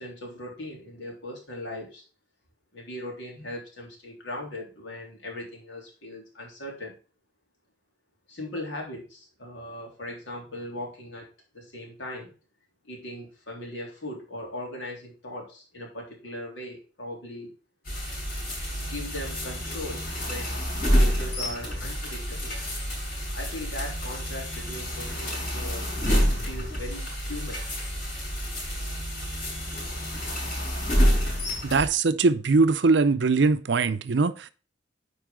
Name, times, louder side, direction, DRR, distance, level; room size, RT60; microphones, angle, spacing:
voice 1, 0.0-2.0 2.7-7.0 8.3-11.3 11.5-12.3 12.8-17.5 18.8-22.6 23.3-25.9 26.4-27.6, left 1 dB, 75° left, 3.4 m, -39 dB
sound 1, 17.9-31.9, equal, 50° left, 4.7 m, -28 dB
voice 2, 31.6-34.5, right 4 dB, 70° right, 0.6 m, -21 dB
9.4 x 4.7 x 3.7 m
head